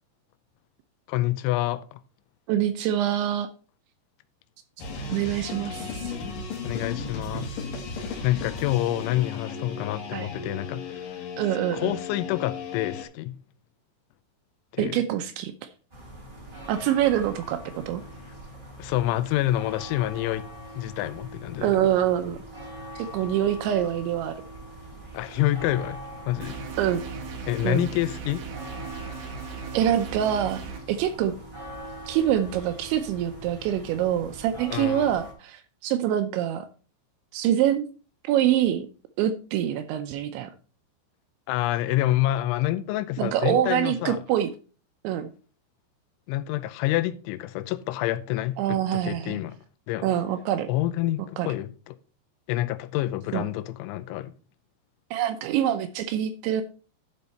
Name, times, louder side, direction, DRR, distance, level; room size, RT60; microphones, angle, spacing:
voice 1, 1.1-2.0 6.6-7.7 8.2-11.2 11.7-13.4 14.7-15.0 18.8-20.5 20.8-21.9 25.1-26.6 27.5-28.5 34.7-35.1 41.5-44.2 46.3-49.6 49.9-50.1 50.7-52.0 52.5-54.3, left 15 dB, 85° left, 2.9 m, -27 dB
voice 2, 2.5-3.5 5.1-6.1 10.1-10.3 11.4-11.9 14.8-15.5 16.7-18.0 21.6-22.4 23.0-24.4 26.8-27.0 27.6-27.9 29.7-30.6 30.9-31.3 32.1-36.7 37.3-37.9 38.2-38.9 39.2-40.5 43.2-44.5 45.0-45.3 48.6-49.4 50.0-50.7 51.4-51.5 53.3-53.5 55.1-56.6, right 11 dB, 80° right, 2.8 m, -25 dB
sound 1, 4.8-13.0, left 4 dB, 60° left, 2.6 m, -35 dB
sound 2, 15.9-35.3, right 1 dB, 15° right, 2.7 m, -42 dB
sound 3, 26.4-30.8, right 6 dB, 60° right, 2.2 m, -38 dB
12.0 x 5.4 x 4.2 m
omnidirectional pair, 5.6 m